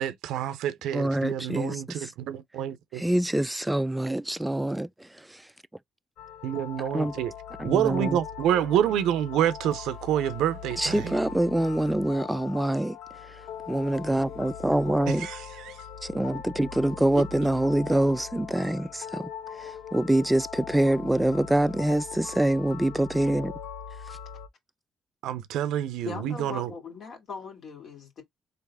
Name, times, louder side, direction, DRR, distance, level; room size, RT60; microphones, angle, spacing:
voice 1, 0.0-3.0 6.4-7.3 7.6-11.1 15.1-15.8 17.1-17.2 25.2-26.7, right 10 dB, 90° right, 0.5 m, -28 dB
voice 2, 0.9-2.1 2.9-4.9 6.9-7.1 7.6-8.2 10.8-13.0 13.7-15.3 16.0-19.3 19.6-23.5, right 1 dB, 10° right, 0.3 m, -25 dB
sound 1, 6.2-24.5, left 7 dB, 80° left, 0.6 m, -41 dB
voice 3, 26.0-28.2, left 5 dB, 65° left, 2.2 m, -39 dB
3.9 x 3.3 x 3.4 m
cardioid pair, 90°, 0 cm